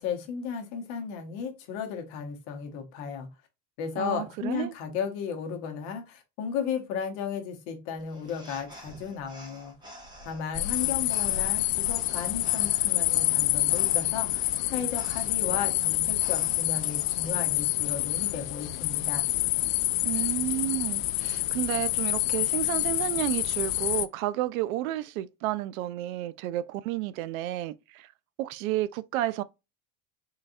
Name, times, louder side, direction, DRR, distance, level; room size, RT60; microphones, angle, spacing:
voice 1, 0.0-3.3 3.8-9.7 10.2-19.3, left 7 dB, 45° left, 1.0 m, -35 dB
voice 2, 4.0-4.7 20.0-28.1 28.4-29.4, right 14 dB, 85° right, 0.5 m, -31 dB
sound 1, 8.0-17.3, right 1 dB, 10° right, 0.8 m, -49 dB
sound 2, 10.5-24.1, left 17 dB, 75° left, 0.5 m, -27 dB
3.9 x 3.2 x 2.5 m
cardioid pair, 175°, 40 cm